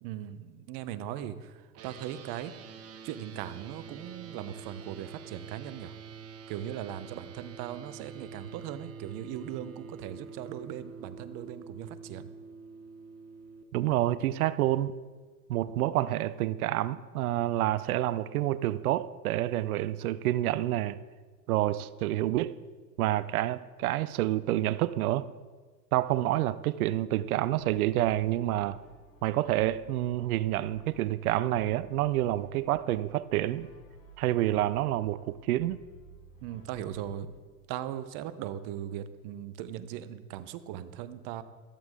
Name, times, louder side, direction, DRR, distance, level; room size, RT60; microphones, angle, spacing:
voice 1, 0.0-1.5 1.8-2.5 3.0-5.9 6.5-12.3 36.4-37.3 37.7-41.4, right 11 dB, 50° right, 1.0 m, -39 dB
sound 1, 1.7-13.6, right 5 dB, 30° right, 1.2 m, -47 dB
voice 2, 13.7-14.9 15.5-21.0 21.5-22.6 23.0-25.3 25.9-28.8 29.2-33.7 34.2-35.8, right 14 dB, 70° right, 0.6 m, -28 dB
Brass instrument, 27.5-37.3, right 1 dB, 50° left, 4.7 m, -55 dB
14.0 x 13.0 x 3.8 m
hypercardioid pair, 95°, 45 cm